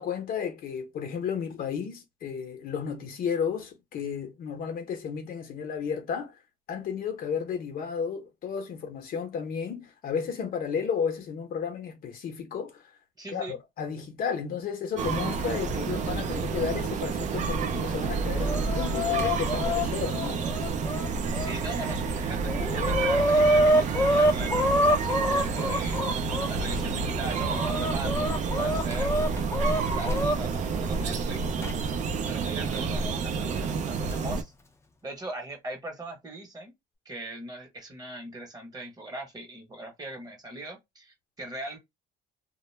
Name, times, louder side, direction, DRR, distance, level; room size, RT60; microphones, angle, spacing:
voice 1, 0.0-6.4 6.7-12.9 13.3-20.4, left 7 dB, 60° left, 0.8 m, -33 dB
voice 2, 13.2-13.6 21.3-29.1 29.9-31.5 32.3-34.5 35.0-36.7 37.0-41.8, right 1 dB, 20° right, 1.0 m, -40 dB
sound 1, 15.0-34.4, right 4 dB, 45° right, 0.5 m, -29 dB
Chicken rooster, 18.1-21.5 22.1-22.2 22.4-26.5 27.1-30.4 31.6-31.7 32.7-32.8 33.8-34.1, equal, 15° left, 0.5 m, -26 dB
2.2 x 2.0 x 3.2 m
cardioid pair, 110°, 17 cm